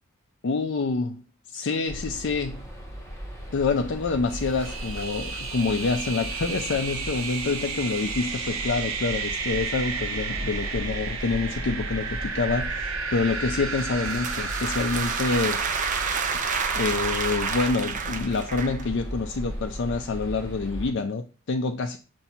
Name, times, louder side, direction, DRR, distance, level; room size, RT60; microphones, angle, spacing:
voice 1, 0.4-1.2 1.5-2.6 3.5-15.6 16.7-22.0, left 4 dB, 60° left, 0.5 m, -27 dB
sound 1, 1.9-20.9, equal, 15° left, 2.0 m, -37 dB
sound 2, 4.3-17.7, right 5 dB, 80° right, 0.9 m, -33 dB
sound 3, 13.8-18.9, right 6 dB, 40° right, 0.5 m, -30 dB
7.0 x 2.7 x 5.6 m
head